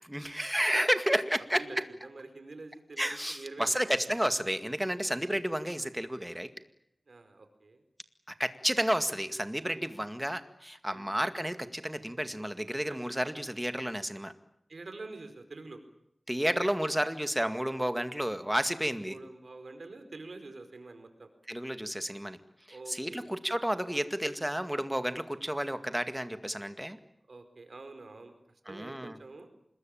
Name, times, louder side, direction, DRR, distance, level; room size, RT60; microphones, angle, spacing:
voice 1, 0.0-1.8 3.0-6.5 8.3-14.3 16.3-19.2 21.5-22.4 22.9-27.0 28.7-29.2, equal, 10° right, 10 dB, 2.0 m, -31 dB
voice 2, 1.6-4.1 5.1-5.2 7.1-7.8 9.7-10.0 10.9-11.1 12.9-13.0 13.4-13.5 14.7-15.8 19.0-21.3 22.7-23.3 27.3-28.4 28.7-29.5, right 3 dB, 70° right, 8 dB, 4.7 m, -47 dB
26.5 x 21.0 x 8.9 m, 0.77 s
wide cardioid pair, 75°, 0 cm